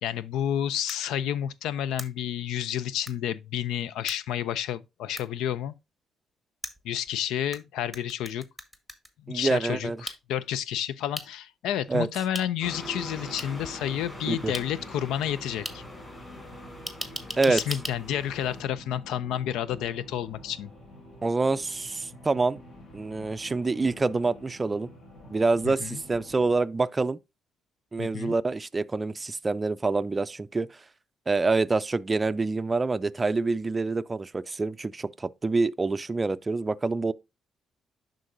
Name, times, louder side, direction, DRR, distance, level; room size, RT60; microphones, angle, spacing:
voice 1, 0.0-5.7 6.8-8.4 9.3-15.8 17.5-20.7 25.6-26.0 28.0-28.3, left 10 dB, 90° left, 0.4 m, -30 dB
sound 1, 0.9-1.0 2.0-2.1 3.1-3.2 4.1-4.2 5.2-5.3 6.6-7.6 7.9-9.1 10.1-10.2 11.1-11.3 12.3-12.4 13.4-13.5 14.5-14.6 15.6-15.7 16.9-17.9, right 1 dB, 5° left, 1.1 m, -36 dB
voice 2, 9.3-10.0 11.9-12.1 14.3-14.5 17.4-17.6 21.2-22.6 22.9-24.9 25.3-27.2 27.9-30.7 31.3-37.1, right 3 dB, 25° right, 0.4 m, -26 dB
sound 2, 12.6-26.6, equal, 60° left, 2.9 m, -48 dB
sound 3, 12.6-18.6, left 1 dB, 20° left, 4.1 m, -43 dB
11.0 x 3.9 x 2.6 m
cardioid pair, 90°, 0 cm